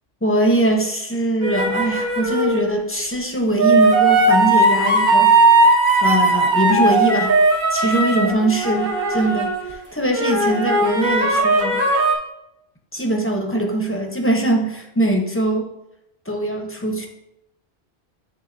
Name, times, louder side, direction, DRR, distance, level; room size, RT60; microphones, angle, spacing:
voice 1, 0.2-5.3 6.0-7.3 7.7-11.8 12.9-15.7 16.3-17.1, right 1 dB, 15° left, 1 dB, 0.7 m, -21 dB
sound 1, 1.4-2.7 3.6-9.8 10.1-12.1, right 2 dB, 50° right, 1.1 m, -17 dB
10.5 x 3.8 x 2.6 m, 0.86 s
omnidirectional pair, 1.1 m